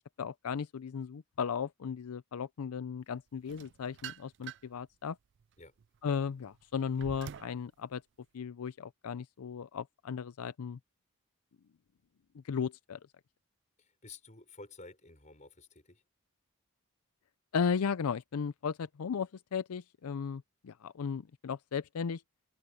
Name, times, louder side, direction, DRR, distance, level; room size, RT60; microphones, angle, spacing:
voice 1, 0.2-5.2 6.0-8.0 8.3-10.8 12.4-13.0 17.5-22.2, left 6 dB, 85° left, 0.5 m, -35 dB
sound 1, 3.5-4.8 5.4-7.6, right 9 dB, 55° right, 0.3 m, -47 dB
voice 2, 13.8-16.0, left 3 dB, 35° left, 6.1 m, -52 dB
head